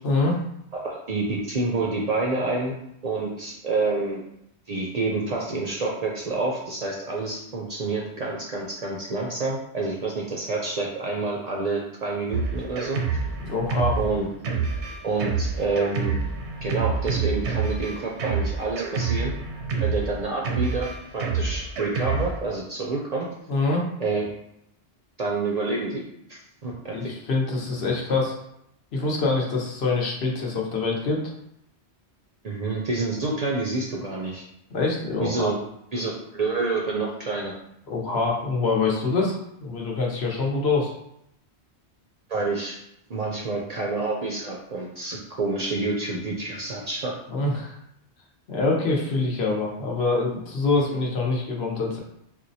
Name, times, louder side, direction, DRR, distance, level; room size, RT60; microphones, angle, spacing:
voice 1, 0.0-0.4 13.4-14.0 23.5-23.9 26.9-28.4 28.9-31.2 34.7-35.5 37.9-40.9 47.3-47.8 48.5-52.0, left 3 dB, 70° left, -2 dB, 1.0 m, -25 dB
voice 2, 0.7-2.8 3.0-4.2 4.7-13.2 14.0-14.3 15.0-16.2 16.6-19.3 19.8-23.3 24.0-24.2 25.2-26.0 26.3-27.1 32.4-34.4 35.2-35.6 35.9-37.5 42.3-42.8 43.1-47.1, right 3 dB, 55° right, -2 dB, 0.4 m, -28 dB
Drum kit, 12.3-22.4, right 5 dB, 85° right, 0.9 m, -28 dB
4.3 x 2.1 x 2.6 m, 0.78 s
omnidirectional pair, 1.1 m